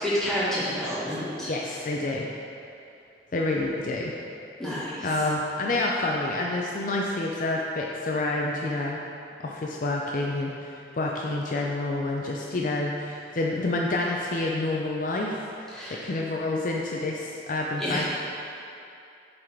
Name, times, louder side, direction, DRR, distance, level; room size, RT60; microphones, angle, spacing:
voice 1, 0.0-1.5 4.6-5.1 15.7-16.1 17.8-18.1, equal, 5° left, -10 dB, 1.4 m, -29 dB
voice 2, 1.5-2.3 3.3-4.1 5.0-9.0 9.4-18.1, left 2 dB, 45° left, -1 dB, 0.4 m, -28 dB
7.6 x 3.9 x 4.4 m, 2.6 s
head